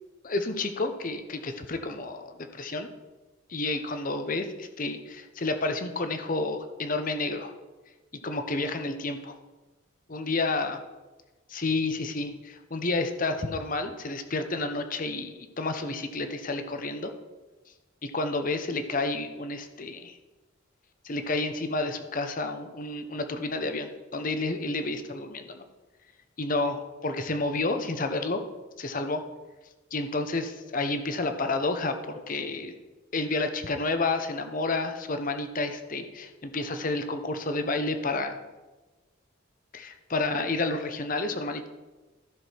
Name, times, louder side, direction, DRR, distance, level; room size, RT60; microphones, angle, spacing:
voice 1, 0.2-2.9 3.5-7.5 8.2-9.4 10.1-10.8 11.5-17.1 18.0-20.2 21.0-25.6 26.4-28.4 28.8-29.2 29.9-32.8 33.1-38.4 39.7-41.7, left 2 dB, 40° left, 7 dB, 0.8 m, -30 dB
14.5 x 6.2 x 4.6 m, 1.2 s
head